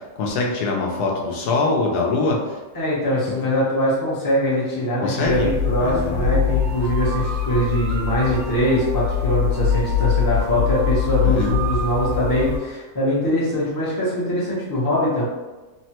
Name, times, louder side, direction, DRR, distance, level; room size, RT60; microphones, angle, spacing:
voice 1, 0.2-2.4 5.0-5.5 5.8-6.5 11.2-11.5, left 3 dB, 80° left, -1 dB, 1.1 m, -23 dB
voice 2, 2.7-15.3, equal, 25° left, -7 dB, 0.5 m, -22 dB
sound 1, 5.2-12.6, left 7 dB, 70° right, 1.1 m, -23 dB
3.2 x 2.1 x 2.8 m, 1.2 s
omnidirectional pair, 1.7 m